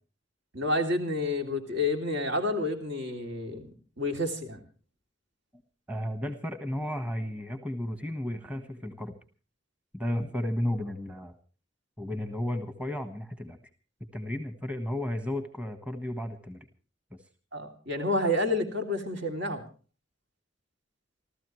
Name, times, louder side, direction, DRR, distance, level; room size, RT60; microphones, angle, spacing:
voice 1, 0.5-3.7 4.0-4.6 17.5-19.6, left 1 dB, 65° right, 4 dB, 3.0 m, -29 dB
voice 2, 5.9-9.1 9.9-11.3 12.0-13.6 14.0-16.7 17.1-17.2, left 1 dB, 5° right, 7 dB, 1.3 m, -33 dB
29.5 x 13.0 x 3.2 m, 0.36 s
head